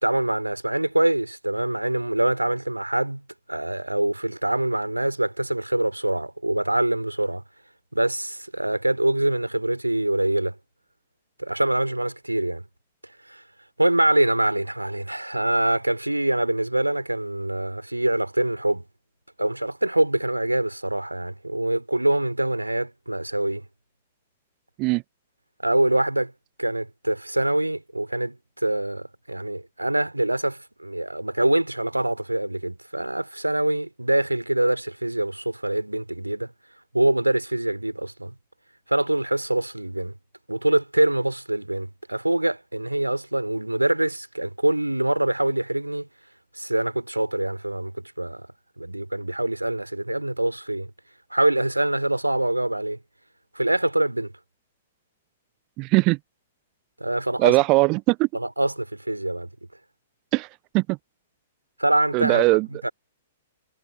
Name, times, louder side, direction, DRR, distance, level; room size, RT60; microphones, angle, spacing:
voice 1, 0.0-3.2 3.5-7.4 7.9-10.6 11.4-12.6 13.3-13.4 13.8-18.8 19.4-23.6 25.6-26.3 26.6-36.5 36.9-38.3 38.9-40.1 40.5-46.1 46.5-47.9 48.2-48.5 48.8-50.9 51.3-53.0 53.6-54.3 57.0-57.6 58.3-59.5 61.8-62.5 62.8-62.9, right 1 dB, 85° right, 3.5 m, -24 dB
voice 2, 55.8-56.2 57.4-58.3 60.3-60.5 60.7-61.0 62.1-62.7, right 25 dB, 30° right, 0.8 m, -20 dB
figure-of-eight pair, 110°, 0 cm